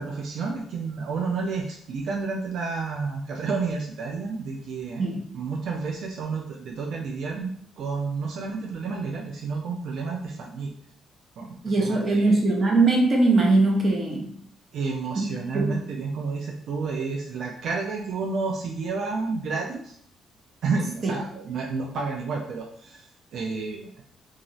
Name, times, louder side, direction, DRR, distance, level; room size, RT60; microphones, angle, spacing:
voice 1, 0.0-5.0 5.3-10.7 11.4-12.4 14.7-19.9 20.6-23.9, right 4 dB, 70° right, 0 dB, 0.4 m, -30 dB
voice 2, 11.4-14.3 15.2-15.3 15.5-15.8 21.0-21.1, right 2 dB, 40° right, 0 dB, 0.7 m, -21 dB
2.6 x 2.4 x 3.0 m, 0.64 s
cardioid pair, 90°, 0 cm